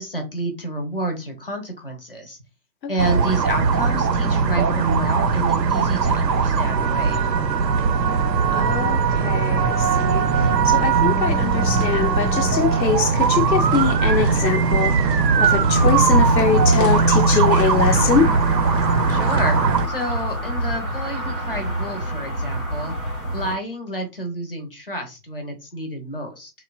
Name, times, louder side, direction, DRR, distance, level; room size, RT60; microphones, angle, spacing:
voice 1, 0.0-2.4 2.9-7.2 19.1-19.6 19.9-26.5, right 1 dB, 35° left, 0.6 m, -29 dB
sound 1, 3.0-19.9, right 5 dB, 80° right, 0.6 m, -19 dB
voice 2, 8.5-18.3, left 7 dB, 85° left, 0.6 m, -23 dB
sound 2, 13.5-20.5, right 1 dB, 35° right, 0.4 m, -40 dB
sound 3, 15.7-23.6, equal, ahead, 0.8 m, -25 dB
3.1 x 2.0 x 2.4 m
figure-of-eight pair, 145°, 49 cm